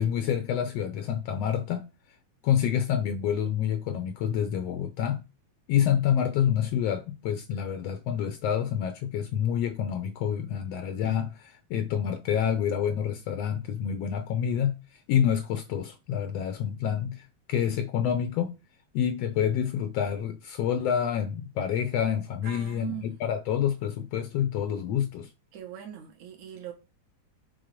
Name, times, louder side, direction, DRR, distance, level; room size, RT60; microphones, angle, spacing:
voice 1, 0.0-1.8 2.4-5.2 5.7-14.8 15.1-18.5 18.9-25.3, left 9 dB, 85° left, 1.4 m, -28 dB
voice 2, 22.4-23.2 25.5-26.7, right 11 dB, 65° right, 2.6 m, -41 dB
6.3 x 3.9 x 5.0 m
omnidirectional pair, 3.7 m